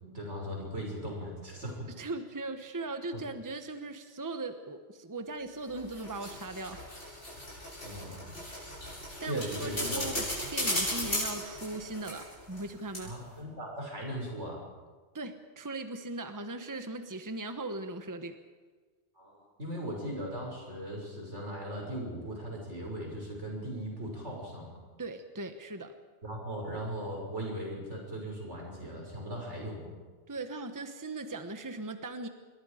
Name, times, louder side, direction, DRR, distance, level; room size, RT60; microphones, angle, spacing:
voice 1, 0.0-1.9 7.8-8.4 9.2-10.0 13.0-14.6 19.1-24.8 26.2-29.9, equal, 85° right, -1 dB, 6.8 m, -38 dB
voice 2, 2.0-6.8 7.1-7.2 9.2-10.2 10.5-13.1 15.1-18.3 25.0-25.9 30.3-32.3, right 2 dB, 15° right, 7 dB, 1.2 m, -39 dB
sound 1, 5.7-12.7 12.9-13.0, left 1 dB, 80° left, 8.5 m, -36 dB
27.5 x 21.5 x 5.1 m, 1.4 s
omnidirectional pair, 1.2 m